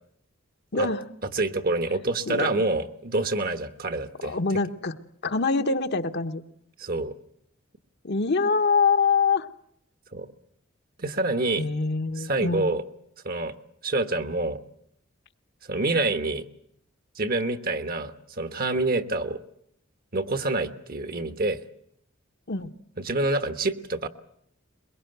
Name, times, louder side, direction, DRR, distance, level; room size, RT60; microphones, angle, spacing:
voice 1, 0.7-1.1 2.3-2.6 4.2-5.0 5.2-6.4 8.0-9.5 11.6-12.7 22.5-22.7, left 4 dB, 55° left, 7 dB, 1.1 m, -24 dB
voice 2, 1.3-4.4 6.8-7.1 10.1-10.3 11.0-11.7 12.2-12.8 13.2-13.5 13.8-14.6 15.7-16.4 17.2-19.4 20.1-21.6 23.0-24.1, right 2 dB, 45° right, 10 dB, 1.3 m, -27 dB
22.5 x 22.0 x 7.9 m, 0.70 s
head